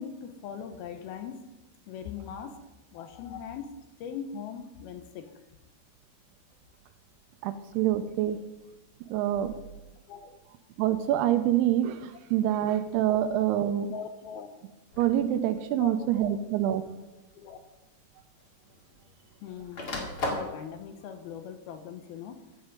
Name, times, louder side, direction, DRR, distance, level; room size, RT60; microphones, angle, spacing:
voice 1, 0.0-1.4 1.9-3.7 4.0-5.3 10.1-10.3 13.9-14.5 15.8-16.4 16.6-16.8 17.3-17.6 19.4-22.4, left 7 dB, 75° left, 7 dB, 2.5 m, -40 dB
voice 2, 7.4-8.4 9.1-9.5 10.8-13.9 15.0-16.8, right 11 dB, 85° right, 10 dB, 2.5 m, -26 dB
sound 1, 14.9-15.2 16.2-16.3 17.8-17.9 18.1-19.2 19.5-20.6, left 2 dB, 40° left, 1.5 m, -34 dB
15.0 x 8.1 x 5.2 m, 1.1 s
omnidirectional pair, 4.9 m